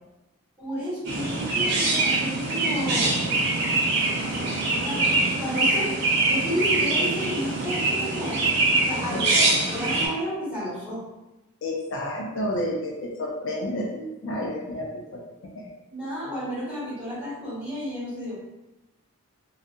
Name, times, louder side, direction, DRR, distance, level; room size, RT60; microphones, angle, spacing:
voice 1, 0.6-3.1 4.2-5.9 6.3-8.4 8.8-11.0 15.9-18.3, equal, 5° right, -12 dB, 1.5 m, -32 dB
Chirp tweet, 1.0-10.1, right 2 dB, 50° right, 0.8 m, -24 dB
voice 2, 9.1-9.5 11.6-15.7, left 1 dB, 60° left, -2 dB, 0.4 m, -31 dB
2.7 x 2.3 x 2.4 m, 1.0 s
head